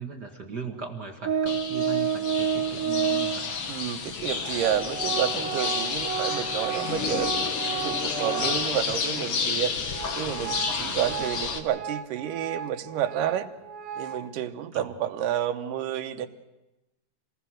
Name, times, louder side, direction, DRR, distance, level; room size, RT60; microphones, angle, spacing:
voice 1, 0.0-3.5 10.7-11.1 14.7-14.9, right 5 dB, 40° right, 2 dB, 1.6 m, -39 dB
Organ, 1.2-3.5 4.3-4.4 4.6-9.0 9.3-9.4 9.9-14.3, right 7 dB, 55° right, 1.7 m, -31 dB
sound 1, 1.5-11.6, left 5 dB, 50° left, 2.1 m, -30 dB
voice 2, 3.7-7.3 7.7-9.7 10.2-13.5 14.0-16.3, right 10 dB, 75° right, 7 dB, 2.6 m, -30 dB
27.0 x 19.0 x 6.4 m, 1.0 s
omnidirectional pair, 3.9 m